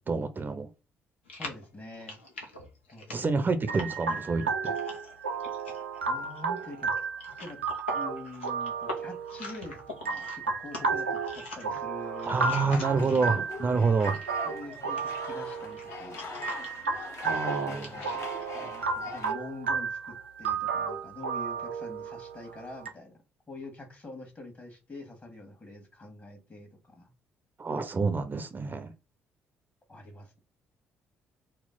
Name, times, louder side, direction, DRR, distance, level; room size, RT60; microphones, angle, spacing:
voice 1, 0.1-0.7 3.1-4.7 12.2-14.2 17.2-17.9 27.6-28.9, right 4 dB, 30° right, 0.6 m, -28 dB
sound 1, 1.3-13.5 13.8-18.5, left 2 dB, 80° left, 0.7 m, -44 dB
voice 2, 1.4-2.2 2.9-3.7 6.0-6.9 7.4-7.6 7.9-13.4 14.4-16.3 17.7-23.2 23.5-27.1 29.9-30.4, left 2 dB, 30° left, 1.4 m, -45 dB
sound 2, 3.7-22.9, right 5 dB, 85° right, 0.4 m, -33 dB
sound 3, 12.7-19.3, left 4 dB, 50° left, 1.0 m, -42 dB
4.3 x 2.0 x 3.7 m
figure-of-eight pair, 45°, 6 cm